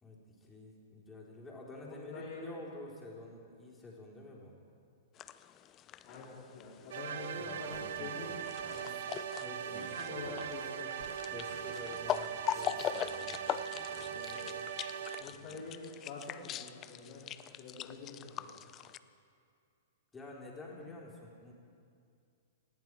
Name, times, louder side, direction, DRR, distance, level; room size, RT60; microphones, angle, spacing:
voice 1, 0.0-4.6 7.3-8.1 9.3-10.4 11.3-13.5 13.9-14.3 15.3-15.6 20.1-21.5, left 2 dB, 15° left, -3 dB, 3.7 m, -50 dB
voice 2, 1.8-2.6 6.0-8.9 10.0-10.9 14.1-14.5 15.2-17.3 17.6-18.5, left 3 dB, 45° left, -7 dB, 3.6 m, -46 dB
sound 1, 5.1-19.0, left 10 dB, 30° left, 0.5 m, -42 dB
sound 2, 6.9-15.2, right 9 dB, 60° right, 0.7 m, -40 dB
Male speech man speaking, 7.7-9.1 9.7-13.2 13.7-14.4, right 7 dB, 35° right, 1.5 m, -56 dB
19.0 x 14.5 x 4.7 m, 2.4 s
figure-of-eight pair, 105°, 0 cm